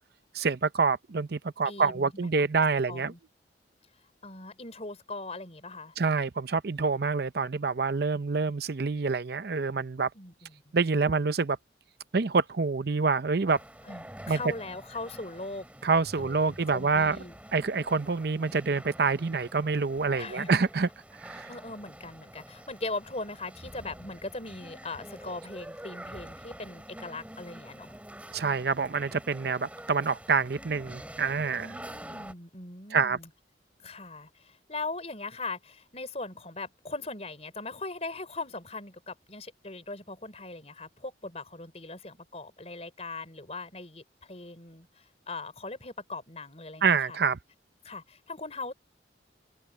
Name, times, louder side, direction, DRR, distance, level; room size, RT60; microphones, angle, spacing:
voice 1, 0.3-3.1 6.0-10.1 10.7-11.6 12.1-13.6 14.3-14.4 15.8-17.2 17.5-20.9 21.2-21.5 28.3-31.7 32.9-33.2 46.8-47.4, right 4 dB, 55° right, 0.6 m, -27 dB
voice 2, 1.6-2.5 2.9-3.2 4.2-5.9 10.1-10.7 13.8-15.7 16.2-17.3 20.2-20.6 21.5-27.9 31.6-33.3 33.8-47.2 47.8-48.7, left 3 dB, 35° left, 4.7 m, -40 dB
sound 1, 13.5-32.3, right 1 dB, 5° right, 4.0 m, -47 dB
head